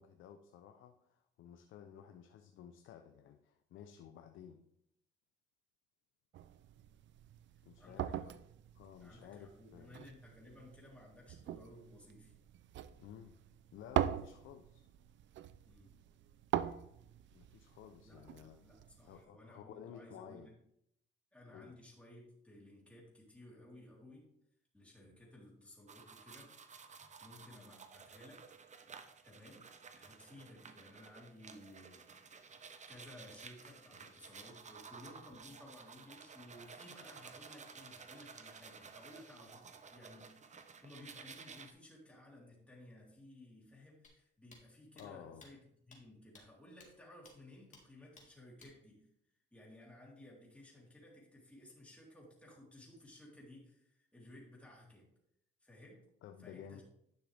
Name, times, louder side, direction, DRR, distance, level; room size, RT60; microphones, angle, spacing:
voice 1, 0.0-4.6 7.6-8.3 8.7-10.0 13.0-13.4 13.7-14.8 17.3-18.6 19.0-20.5 21.5-21.8 45.0-45.4 56.2-56.8, left 9 dB, 80° left, 6 dB, 0.7 m, -54 dB
sound 1, 6.3-19.2, right 11 dB, 70° right, 0.5 m, -43 dB
voice 2, 7.5-8.2 9.0-12.3 15.6-16.0 18.1-20.5 21.3-24.3 24.7-26.5 27.2-28.4 29.2-29.6 29.9-32.4 32.9-45.6 45.9-49.1 49.5-55.1 55.6-56.1 56.4-56.8, left 1 dB, 5° left, -5 dB, 3.4 m, -57 dB
sound 2, 25.9-41.7, right 5 dB, 35° right, 0.9 m, -54 dB
sound 3, 44.0-44.1 44.5-44.6 45.0-45.1 45.4-45.5 45.9-46.0 46.3-46.4 46.8-46.9 47.3-47.4 47.7-47.8 48.2-48.3 48.6-48.7, left 3 dB, 40° left, 2.2 m, -58 dB
10.5 x 6.1 x 3.4 m, 0.76 s
cardioid pair, 90°, 20 cm